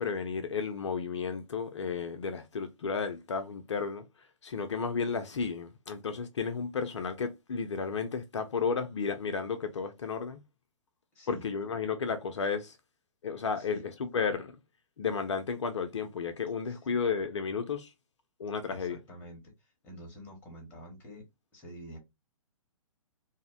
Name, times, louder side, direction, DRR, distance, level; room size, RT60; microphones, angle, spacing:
voice 1, 0.0-10.4 11.3-12.8 13.2-14.6 15.0-17.9 18.4-19.0, left 5 dB, 55° left, 0.5 m, -33 dB
voice 2, 11.1-11.5 13.6-13.8 16.7-16.8 18.7-22.0, equal, 10° left, 0.9 m, -48 dB
2.6 x 2.1 x 2.4 m
figure-of-eight pair, 125°, 18 cm